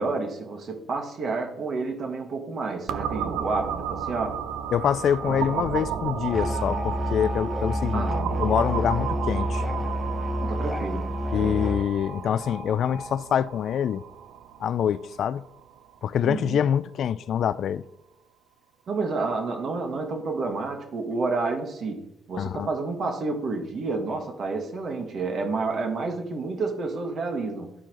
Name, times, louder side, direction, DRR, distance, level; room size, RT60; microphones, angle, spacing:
voice 1, 0.0-4.4 7.9-8.8 10.4-11.6 16.2-16.6 18.9-27.7, right 3 dB, 55° right, 1.5 m, -30 dB
sound 1, 2.9-16.4, right 9 dB, 85° right, 0.4 m, -33 dB
voice 2, 4.7-8.1 8.4-9.6 11.3-14.0 14.6-15.4 16.0-17.8 22.4-22.7, left 9 dB, 65° left, 0.3 m, -25 dB
Alarm, 6.3-14.3, left 2 dB, 50° left, 1.3 m, -41 dB
Musical instrument, 6.3-11.9, equal, 5° left, 0.7 m, -29 dB
12.0 x 4.7 x 3.0 m
cardioid pair, 90°, 0 cm